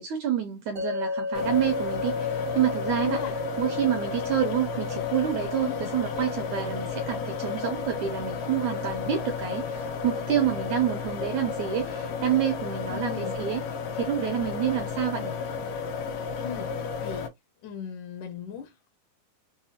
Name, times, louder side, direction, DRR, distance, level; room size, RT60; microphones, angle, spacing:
voice 1, 0.0-13.6 13.9-15.4, right 10 dB, 80° right, 1.7 m, -28 dB
sound 1, 0.8-13.9, left 3 dB, 60° right, 0.7 m, -36 dB
sound 2, 1.3-17.3, left 5 dB, 85° left, 3.0 m, -33 dB
voice 2, 3.0-3.3 5.6-5.8 12.9-13.3 16.4-16.7 17.0-17.3 17.6-18.9, left 7 dB, 70° left, 2.0 m, -37 dB
6.4 x 2.3 x 2.8 m
omnidirectional pair, 4.2 m